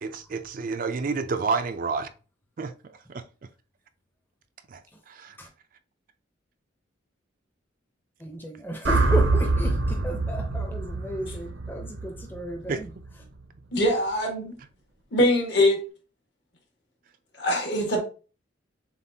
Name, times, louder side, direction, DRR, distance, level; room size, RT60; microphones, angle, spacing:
voice 1, 0.0-2.1 2.6-3.5 4.7-5.4 12.7-12.8, right 4 dB, 45° right, 0.4 m, -30 dB
voice 2, 8.2-12.9, equal, 10° left, 0.6 m, -34 dB
sound 1, 8.8-13.1, right 3 dB, 80° right, 0.8 m, -25 dB
voice 3, 13.7-14.6 15.1-15.8 17.4-18.0, left 1 dB, 65° left, 1.6 m, -22 dB
6.9 x 2.4 x 2.7 m
head